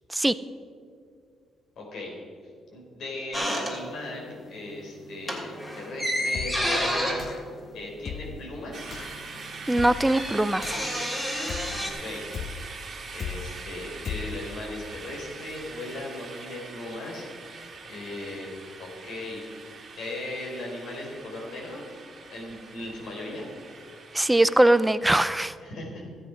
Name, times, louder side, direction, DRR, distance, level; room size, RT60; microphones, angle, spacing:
voice 1, 1.8-2.1 2.7-7.2 7.7-8.9 11.8-12.3 13.1-17.3 17.8-18.5 18.8-19.4 20.0-21.8 22.3-23.5 25.6-26.0, left 2 dB, 75° left, -1 dB, 3.9 m, -37 dB
sound 1, 3.3-4.3 4.6-4.8 5.1-8.6 8.9-9.0 9.2-11.9, equal, 15° left, 2.8 m, -30 dB
sound 2, 6.3-6.8 7.2-7.6 8.0-8.5 8.9-9.2 9.8-10.2 10.6-11.0 11.5-11.9 12.3-12.8 13.2-13.6 14.0-14.5, left 6 dB, 55° left, 0.7 m, -37 dB
sound 3, 8.7-25.0, right 4 dB, 45° right, 2.5 m, -43 dB
voice 2, 9.7-10.8 24.1-25.5, right 1 dB, 10° right, 14 dB, 0.5 m, -21 dB
14.0 x 9.5 x 5.1 m, 2.2 s
cardioid pair, 90°, 0 cm